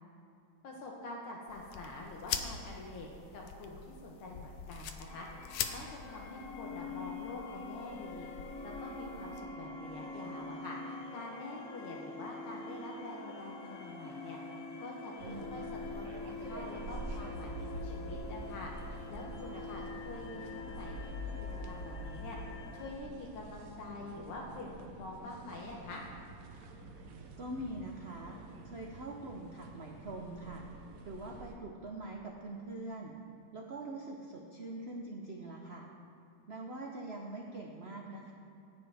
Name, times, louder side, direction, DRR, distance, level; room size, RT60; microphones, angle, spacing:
voice 1, 0.6-3.1 3.3-8.3 8.6-14.4 14.8-21.3 21.7-22.4 22.7-26.0, left 2 dB, 85° left, -2 dB, 1.9 m, -46 dB
sound 1, 1.5-9.4, left 7 dB, 70° left, 1.3 m, -44 dB
sound 2, 5.1-22.9, left 3 dB, 55° left, 1.0 m, -44 dB
sound 3, 15.2-31.6, right 3 dB, 60° right, 0.9 m, -48 dB
voice 2, 15.2-15.5 19.5-19.7 27.4-28.4 28.6-30.6 31.0-33.2 33.5-35.9 36.5-38.3, right 2 dB, 85° right, 0 dB, 0.5 m, -43 dB
14.5 x 9.1 x 3.5 m, 2.7 s
omnidirectional pair, 2.3 m